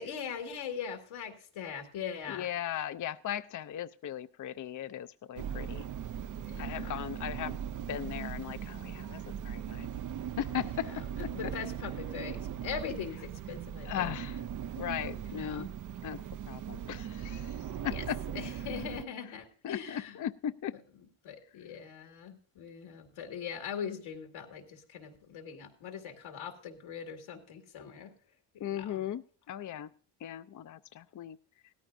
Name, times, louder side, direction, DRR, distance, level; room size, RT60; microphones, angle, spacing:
voice 1, 0.0-2.5 6.5-7.0 10.6-14.1 15.3-15.7 17.8-18.1 18.3-20.2 20.9-28.1 28.5-29.0, left 7 dB, 85° left, 4 dB, 2.2 m, -41 dB
voice 2, 2.3-5.9 6.6-7.6 7.9-9.9 10.4-11.0 13.9-14.4 14.8-15.6 16.0-18.2 19.6-20.7 28.6-29.9 30.2-31.4, left 10 dB, 40° left, 11 dB, 0.5 m, -38 dB
sound 1, 5.4-19.0, right 9 dB, 40° right, 0.5 m, -39 dB
17.0 x 13.5 x 2.6 m, 0.43 s
supercardioid pair, 55°, 48 cm